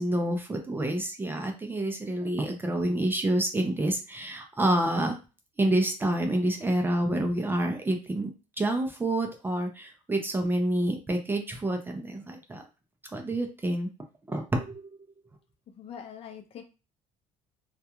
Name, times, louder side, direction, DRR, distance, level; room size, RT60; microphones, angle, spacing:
voice 1, 0.0-5.2 5.6-12.6 13.1-13.9 14.3-14.8, right 1 dB, 15° right, 3 dB, 0.5 m, -28 dB
voice 2, 15.8-16.6, left 8 dB, 40° left, 5 dB, 0.5 m, -43 dB
2.3 x 2.2 x 2.9 m, 0.31 s
cardioid pair, 125°, 15 cm